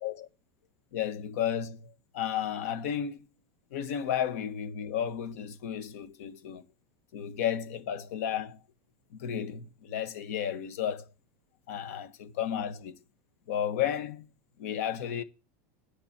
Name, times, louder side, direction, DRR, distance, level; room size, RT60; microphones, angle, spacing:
voice 1, 0.9-3.3 3.7-6.6 7.1-8.6 9.1-11.1 11.7-13.0 13.5-14.3 14.6-15.2, left 9 dB, 80° left, 1.4 m, -33 dB
10.0 x 5.1 x 7.4 m
supercardioid pair, 150°, 8 cm